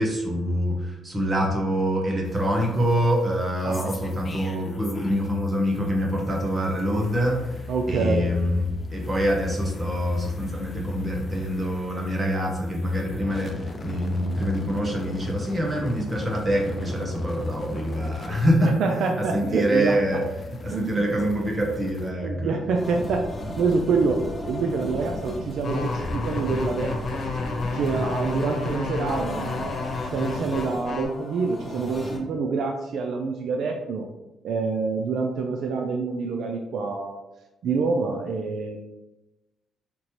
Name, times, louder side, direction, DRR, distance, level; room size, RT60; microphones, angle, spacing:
voice 1, 0.0-18.7 19.2-20.2 20.6-22.5, equal, 25° right, 0 dB, 1.2 m, -25 dB
sound 1, 2.3-5.5 5.8-22.1, left 3 dB, 35° left, 0.6 m, -39 dB
voice 2, 7.7-8.3 18.6-20.2 20.7-21.0 22.2-23.3 23.6-27.2 27.7-34.1 34.4-37.2 37.6-38.8, right 4 dB, 70° right, 3 dB, 0.4 m, -26 dB
sound 2, 22.7-32.2, left 1 dB, 20° left, 0.9 m, -36 dB
sound 3, 25.6-31.0, left 3 dB, 60° left, 1.1 m, -30 dB
5.2 x 2.9 x 3.1 m, 0.98 s
cardioid pair, 90°, 0 cm